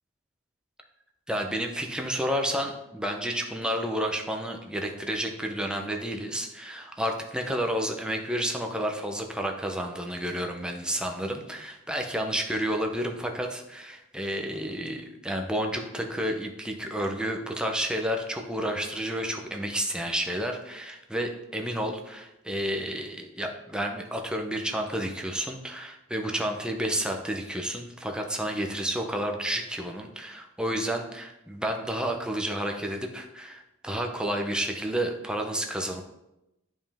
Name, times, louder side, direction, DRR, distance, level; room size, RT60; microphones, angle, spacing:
voice 1, 1.3-36.0, equal, 5° right, 2 dB, 0.7 m, -31 dB
9.5 x 5.4 x 3.5 m, 0.91 s
head